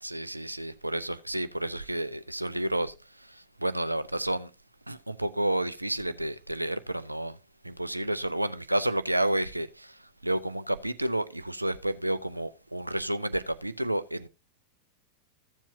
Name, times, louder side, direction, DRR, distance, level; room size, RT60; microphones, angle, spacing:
voice 1, 0.0-4.5 4.9-7.4 7.6-14.3, right 1 dB, 85° right, 0.6 m, -31 dB
14.5 x 7.3 x 2.7 m
figure-of-eight pair, 90°, 0 cm